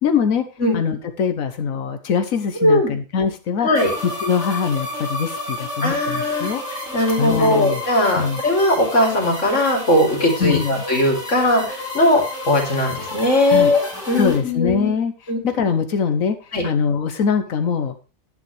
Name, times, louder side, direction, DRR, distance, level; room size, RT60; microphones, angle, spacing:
voice 1, 0.0-0.5 0.7-3.7 4.0-6.6 7.2-7.8 8.2-8.4 10.4-10.8 13.5-13.7 14.2-15.1 15.4-16.4 16.6-17.9, left 6 dB, 80° left, 9 dB, 1.4 m, -22 dB
voice 2, 2.6-2.9 3.6-3.9 5.8-6.5 6.9-13.8 14.1-14.9 15.3-15.4 16.5-16.6, left 1 dB, 65° left, 2 dB, 3.4 m, -19 dB
sound 1, 3.7-14.4, left 2 dB, 5° right, 6.1 m, -31 dB
11.0 x 9.5 x 3.3 m, 0.30 s
omnidirectional pair, 1.4 m